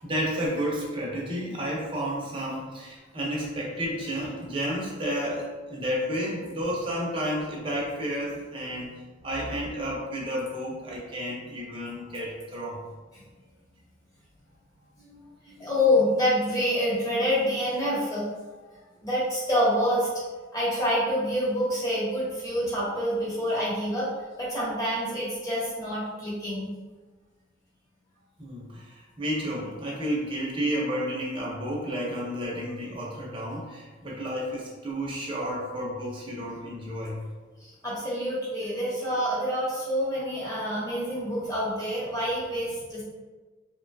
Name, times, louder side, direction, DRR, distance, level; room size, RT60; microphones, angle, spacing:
voice 1, 0.0-12.8 28.4-37.2, equal, 25° right, -4 dB, 0.6 m, -31 dB
voice 2, 15.5-18.2 19.0-20.1 20.5-24.1 24.4-26.7 37.8-43.0, equal, 20° left, -8 dB, 0.9 m, -27 dB
2.9 x 2.2 x 2.6 m, 1.3 s
head